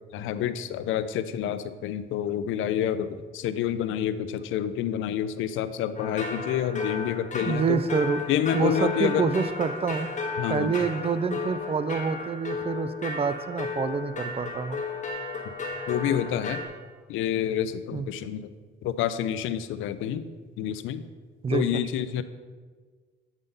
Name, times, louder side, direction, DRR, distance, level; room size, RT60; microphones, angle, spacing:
voice 1, 0.1-7.8 8.3-9.3 10.4-10.7 15.9-16.6 17.1-18.5 18.8-20.3 20.6-21.0 21.5-22.2, left 10 dB, 85° left, 13 dB, 0.4 m, -28 dB
sound 1, 6.0-16.7, left 4 dB, 40° left, 1.4 m, -34 dB
voice 2, 7.4-8.2 8.5-10.1 10.5-14.8 17.9-18.1 21.4-21.8, right 5 dB, 30° right, 13 dB, 0.4 m, -27 dB
8.1 x 3.7 x 5.3 m, 1.5 s
cardioid pair, 90°, 20 cm